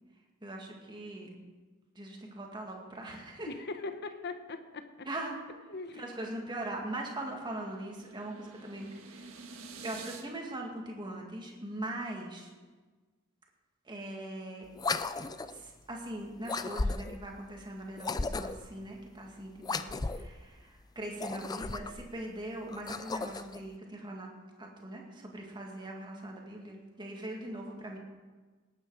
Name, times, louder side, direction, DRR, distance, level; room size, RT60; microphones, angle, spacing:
voice 1, 0.4-1.4 2.0-3.5 5.1-5.4 5.9-9.5 9.8-12.5 13.8-14.7 15.5-24.3 24.6-28.0, right 1 dB, 20° right, 0 dB, 2.1 m, -41 dB
voice 2, 3.5-5.1 5.7-6.1, left 3 dB, 55° left, 8 dB, 1.0 m, -40 dB
sound 1, 5.9-10.2, right 4 dB, 85° right, 1.6 m, -50 dB
sound 2, 14.7-15.6 16.4-17.3 18.0-18.7 19.6-20.3 21.1-22.1 22.7-23.6, left 3 dB, 20° left, 0.4 m, -35 dB
19.0 x 9.0 x 4.9 m, 1.3 s
head